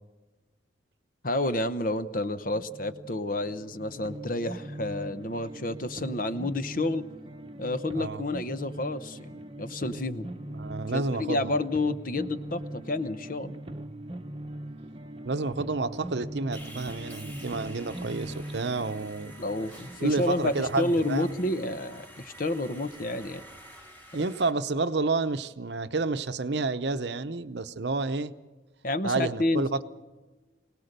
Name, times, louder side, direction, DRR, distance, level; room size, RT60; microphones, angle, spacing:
voice 1, 1.2-7.0 7.6-10.3 10.9-13.5 19.4-23.4 28.8-29.8, left 2 dB, 45° left, 0.9 m, -30 dB
sound 1, 2.5-21.6, right 1 dB, 30° right, 0.9 m, -41 dB
voice 2, 10.6-11.6 15.2-19.3 20.0-21.3 24.1-28.3 29.0-29.8, right 3 dB, 60° right, 0.8 m, -30 dB
Sawing, 16.5-24.5, right 1 dB, 10° left, 2.5 m, -49 dB
24.5 x 18.5 x 6.7 m
head